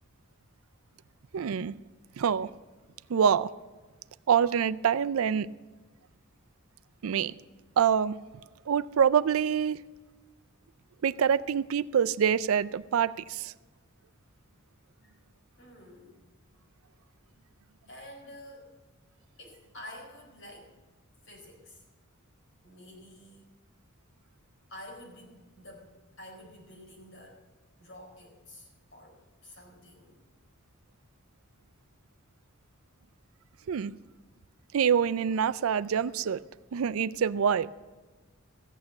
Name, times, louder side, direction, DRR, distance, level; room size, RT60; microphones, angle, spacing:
voice 1, 1.3-1.7 2.2-2.5 3.1-3.5 4.3-5.5 7.0-7.3 7.8-8.1 8.7-9.8 11.0-13.5 33.7-33.9 34.7-36.4 36.7-37.7, right 7 dB, 75° right, 0.4 m, -25 dB
voice 2, 15.6-16.2 17.9-18.7 19.4-20.8 21.2-21.8 22.6-23.4 24.7-25.9 26.2-27.4 27.8-30.2, left 1 dB, 65° left, 4.4 m, -49 dB
14.5 x 8.8 x 7.1 m
head